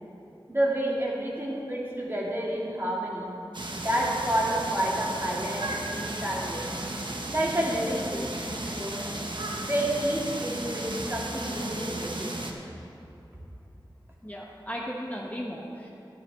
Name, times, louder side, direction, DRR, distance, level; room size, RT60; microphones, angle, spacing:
voice 1, 0.5-3.3 3.7-6.7 7.3-9.0 9.6-12.3, right 1 dB, 25° right, -5 dB, 2.4 m, -29 dB
sound 1, 3.5-12.5, right 1 dB, 60° right, 1.0 m, -35 dB
voice 2, 14.2-15.9, equal, 20° left, -3 dB, 1.0 m, -36 dB
12.5 x 9.5 x 3.6 m, 2.8 s
wide cardioid pair, 50°, 9 cm